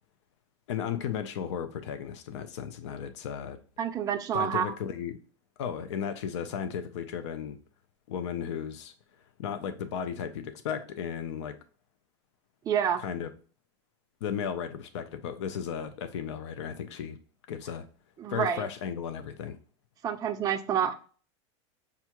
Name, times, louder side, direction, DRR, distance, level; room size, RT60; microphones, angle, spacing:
voice 1, 0.7-3.6 4.3-5.2 5.6-7.6 8.1-8.9 9.4-11.6 13.0-13.3 14.2-17.2 17.5-17.9 18.3-19.6, left 8 dB, 80° left, 0.5 m, -35 dB
voice 2, 3.8-4.7 12.7-13.0 18.2-18.7 20.0-20.9, right 8 dB, 25° right, 0.4 m, -28 dB
5.4 x 2.5 x 2.9 m
supercardioid pair, 125°, 15 cm